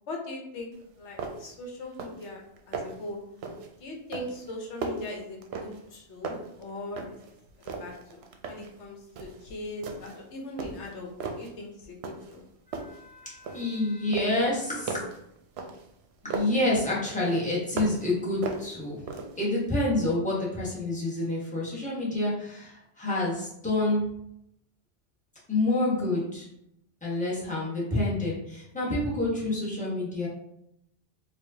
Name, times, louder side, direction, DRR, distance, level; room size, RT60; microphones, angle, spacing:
voice 1, 0.1-0.7 1.0-3.2 3.8-7.2 7.6-11.1 11.4-12.4, left 2 dB, 80° left, 1 dB, 1.1 m, -40 dB
sound 1, 0.7-0.8 1.2-1.6 1.9-2.3 2.6-3.1 3.4-3.7 4.1-6.0 6.2-7.3 7.6-8.8 9.2-9.4 9.8-10.2 10.6-11.5 12.0-12.4 12.7-13.8 14.1-16.6 17.0-18.1 18.4-19.5, right 4 dB, 70° right, 0.8 m, -37 dB
voice 2, 12.7-15.0 16.2-19.0 19.3-24.0 25.5-26.5 27.0-30.3, left 2 dB, 5° left, -7 dB, 1.2 m, -28 dB
4.6 x 2.6 x 2.7 m, 0.79 s
omnidirectional pair, 1.1 m